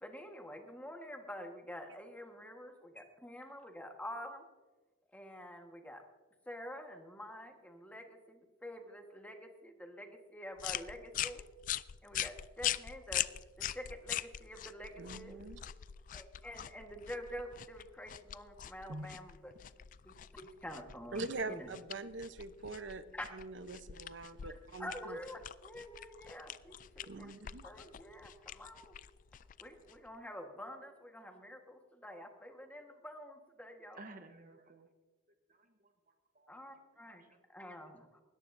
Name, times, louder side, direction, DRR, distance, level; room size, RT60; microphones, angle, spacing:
voice 1, 0.0-4.4 5.1-6.0 6.5-11.5 12.0-13.2 13.6-15.4 16.1-19.5 20.0-21.7 23.1-23.3 24.8-27.3 27.6-28.9 29.6-34.0 36.5-37.3 37.5-38.2, equal, 10° left, 3 dB, 1.4 m, -47 dB
sound 1, 10.6-30.1, left 12 dB, 45° left, 0.3 m, -43 dB
voice 2, 15.0-15.6 18.9-19.1 21.1-23.0 23.3-25.2 27.1-27.6, right 3 dB, 85° right, 11 dB, 0.8 m, -43 dB
voice 3, 33.9-34.9 35.5-37.4, right 2 dB, 45° right, 6 dB, 1.0 m, -56 dB
19.5 x 14.0 x 2.6 m, 1.3 s
head